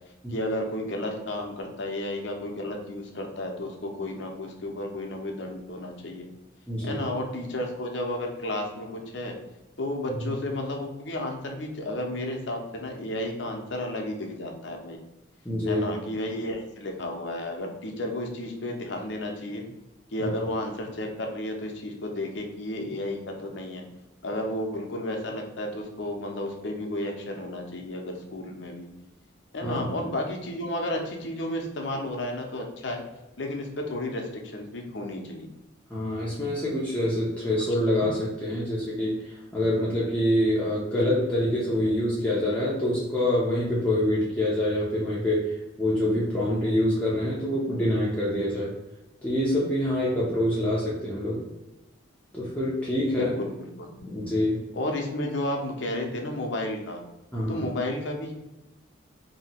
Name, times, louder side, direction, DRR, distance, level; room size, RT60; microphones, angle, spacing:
voice 1, 0.3-6.3 6.8-9.4 9.8-15.0 15.7-19.6 20.1-23.8 24.2-28.9 29.5-33.0 33.4-35.5 53.1-53.9 54.7-57.0 57.5-58.3, left 1 dB, 65° left, 2 dB, 0.7 m, -32 dB
voice 2, 6.7-7.1 10.1-10.3 15.4-15.9 20.2-20.5 29.6-30.0 35.9-48.7 49.2-51.4 52.3-53.3 54.0-54.6 57.3-57.6, left 1 dB, 5° left, -8 dB, 0.7 m, -26 dB
2.9 x 2.8 x 4.2 m, 1.0 s
head